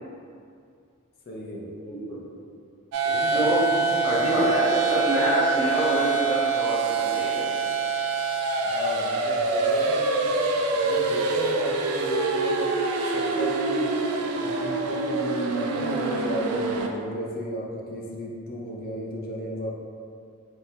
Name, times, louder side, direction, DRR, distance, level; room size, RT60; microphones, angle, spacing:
voice 1, 1.3-1.7 3.1-4.4 8.6-12.7 13.1-19.7, equal, 45° left, -3 dB, 0.4 m, -34 dB
voice 2, 1.8-2.2 3.3-3.6 4.0-7.5, right 1 dB, 25° left, -13 dB, 0.9 m, -26 dB
sound 1, 2.9-16.9, right 4 dB, 75° right, 0.3 m, -25 dB
3.2 x 2.1 x 2.7 m, 2.3 s
head